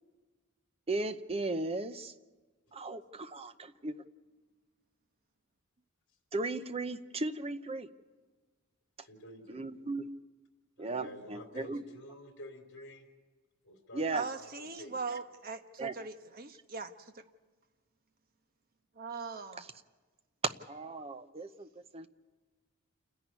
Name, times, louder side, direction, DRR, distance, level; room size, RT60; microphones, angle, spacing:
voice 1, 0.9-2.1 2.7-4.0 6.3-7.9 9.5-10.0 10.8-11.8 13.9-14.3 15.8-15.9 19.6-19.7 20.7-22.1, right 2 dB, 30° right, 11 dB, 0.7 m, -36 dB
voice 2, 9.0-9.7 10.8-13.1 13.6-15.0, left 1 dB, 60° left, 3 dB, 3.2 m, -50 dB
voice 3, 14.1-17.1 19.0-19.6, right 4 dB, 45° right, 7 dB, 1.1 m, -40 dB
28.5 x 10.5 x 9.4 m, 1.3 s
head